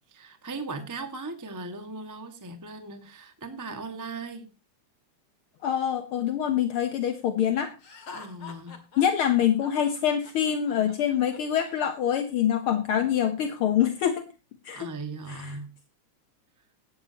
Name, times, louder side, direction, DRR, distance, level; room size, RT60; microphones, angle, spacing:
voice 1, 0.1-4.5 8.1-8.8 14.7-15.7, right 3 dB, 10° right, 6 dB, 0.9 m, -38 dB
voice 2, 5.6-7.7 9.0-14.3 14.6-14.9 15.3-15.5, left 9 dB, 65° left, 8 dB, 1.4 m, -25 dB
Laughter, 7.8-11.7, left 5 dB, 45° left, 2.7 m, -46 dB
17.5 x 12.5 x 2.9 m, 0.29 s
omnidirectional pair, 3.6 m